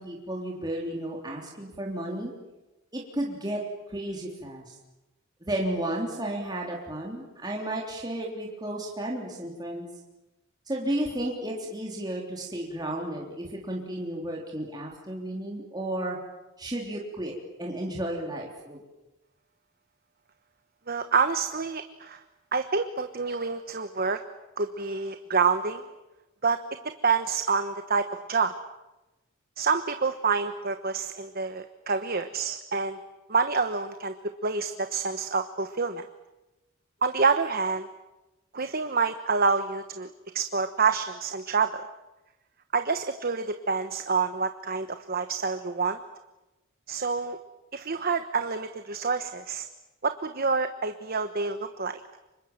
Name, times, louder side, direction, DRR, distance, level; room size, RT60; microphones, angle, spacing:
voice 1, 0.0-2.3 2.9-3.6 3.9-4.8 5.4-9.9 10.7-16.2 16.6-17.3 17.6-18.8, right 1 dB, 20° right, -2 dB, 3.5 m, -33 dB
voice 2, 20.9-22.2 22.5-24.2 24.6-25.8 26.4-26.6 27.0-28.5 29.6-33.0 33.3-34.1 34.4-36.0 37.0-37.9 38.5-40.1 40.3-41.8 42.7-46.0 46.9-47.4 47.7-49.7 50.0-52.0, right 5 dB, 45° right, 9 dB, 1.1 m, -27 dB
29.5 x 26.0 x 7.4 m, 1.0 s
head